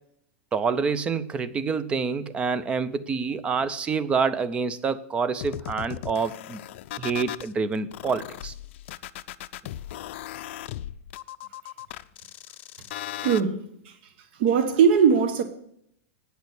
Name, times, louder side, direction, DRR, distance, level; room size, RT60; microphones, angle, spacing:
voice 1, 0.5-6.6 7.0-8.5, right 5 dB, 15° right, 0.5 m, -27 dB
sound 1, 5.4-7.5 7.9-13.4, left 13 dB, 60° left, 0.5 m, -37 dB
voice 2, 13.2-14.0 14.4-15.4, right 6 dB, 50° right, 1.1 m, -20 dB
9.3 x 6.4 x 8.1 m
supercardioid pair, 160°, 7 cm